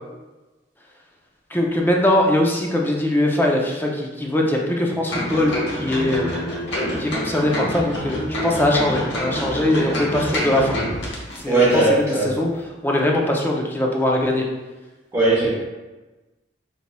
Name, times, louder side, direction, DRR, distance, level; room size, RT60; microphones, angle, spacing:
voice 1, 1.5-6.5 7.0-10.7 11.4-12.5 12.8-14.5, left 1 dB, 10° left, -1 dB, 0.5 m, -21 dB
sound 1, 5.1-11.4 11.7-11.8, equal, 70° left, 1.0 m, -27 dB
voice 2, 11.5-12.3 15.1-15.5, right 2 dB, 15° right, -9 dB, 0.9 m, -18 dB
4.4 x 4.1 x 2.2 m, 1.2 s
head